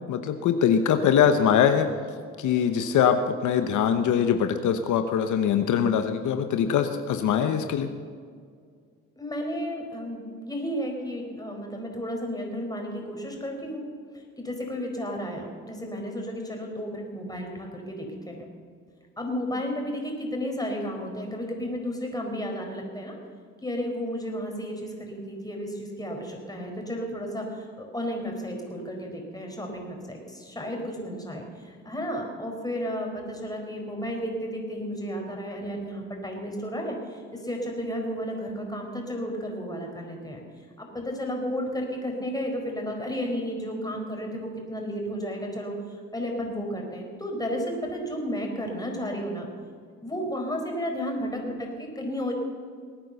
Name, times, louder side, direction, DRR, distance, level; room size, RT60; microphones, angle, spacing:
voice 1, 0.1-1.9 2.4-7.9, left 8 dB, 75° left, 8 dB, 1.0 m, -22 dB
voice 2, 9.2-13.8 14.1-18.5 19.2-23.2 23.6-40.4 40.8-45.7 46.1-49.5 50.0-52.3, equal, 10° left, 1 dB, 4.5 m, -33 dB
20.0 x 9.2 x 6.9 m, 2.1 s
cardioid pair, 90°, 30 cm